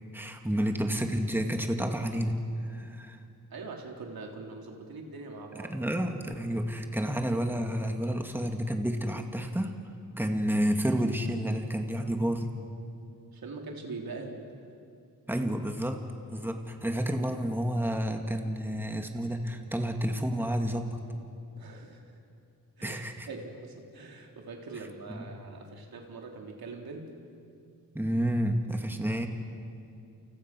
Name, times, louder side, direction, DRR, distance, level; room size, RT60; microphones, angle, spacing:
voice 1, 0.1-2.4 2.6-3.2 5.5-9.7 10.2-12.5 15.3-16.0 16.3-21.0 22.8-23.3 25.1-25.2 27.9-29.3, equal, 5° right, 4 dB, 2.1 m, -30 dB
voice 2, 3.5-5.7 13.3-14.4 21.6-22.0 22.8-27.1, right 3 dB, 80° right, 1 dB, 3.6 m, -42 dB
29.0 x 29.0 x 6.1 m, 2.5 s
cardioid pair, 85°, 36 cm